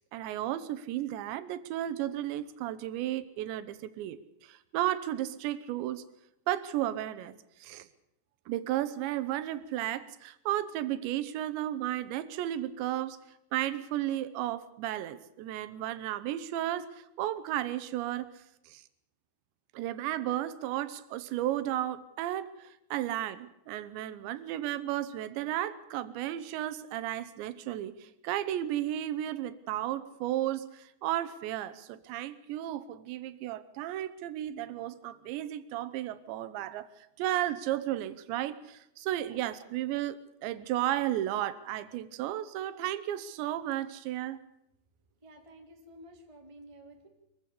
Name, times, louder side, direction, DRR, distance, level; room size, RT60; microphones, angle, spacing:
voice 1, 0.1-6.0 6.5-7.3 7.6-7.9 8.5-13.2 13.5-18.3 18.7-18.8 19.7-36.9 37.2-44.4, right 13 dB, 80° right, 13 dB, 3.3 m, -34 dB
voice 2, 45.2-47.1, right 1 dB, 10° right, 3 dB, 2.0 m, -52 dB
23.5 x 15.5 x 8.4 m, 0.82 s
omnidirectional pair, 5.1 m